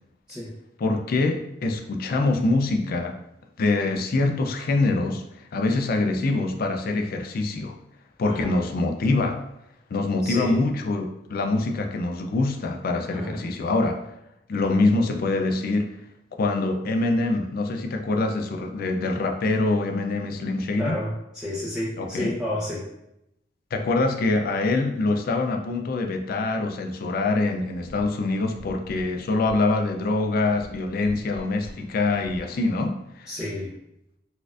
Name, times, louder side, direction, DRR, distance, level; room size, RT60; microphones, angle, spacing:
voice 1, 0.8-3.2 3.6-7.7 8.2-9.4 9.9-14.0 14.5-15.9 16.4-21.0 22.0-22.3 23.7-33.3, left 2 dB, 50° left, 4 dB, 0.4 m, -24 dB
voice 2, 8.2-8.5 10.2-10.6 13.1-13.4 20.8-22.9 33.3-33.7, left 1 dB, 5° right, -9 dB, 0.7 m, -31 dB
sound 1, 27.7-32.8, equal, 65° right, 1.2 m, -45 dB
4.1 x 2.5 x 2.4 m, 0.83 s
head